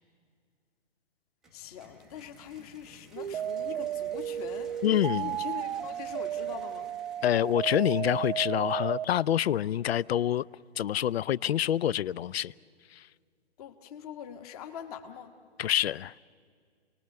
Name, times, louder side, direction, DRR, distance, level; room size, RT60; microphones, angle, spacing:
sound 1, 1.4-9.2, right 2 dB, ahead, 0.5 m, -57 dB
voice 1, 1.5-6.9 13.6-15.3, left 8 dB, 35° left, 1.4 m, -43 dB
sound 2, 3.2-9.0, right 10 dB, 55° right, 0.6 m, -34 dB
voice 2, 4.8-5.3 7.2-10.4 10.8-12.5 15.6-16.1, left 11 dB, 70° left, 0.5 m, -26 dB
28.5 x 20.0 x 6.7 m
hypercardioid pair, 145°, 33 cm